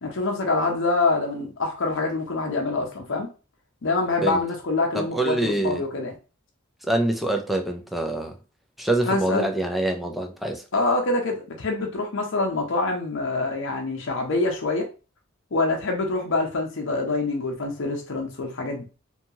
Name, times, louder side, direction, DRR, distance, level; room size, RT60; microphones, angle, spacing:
voice 1, 0.0-3.3 3.8-6.1 9.1-9.5 10.7-14.9 15.5-18.8, left 3 dB, 65° left, 0.7 m, -25 dB
voice 2, 4.9-5.8 6.8-8.4 8.8-10.6, right 1 dB, ahead, 0.4 m, -25 dB
2.8 x 2.3 x 2.7 m
head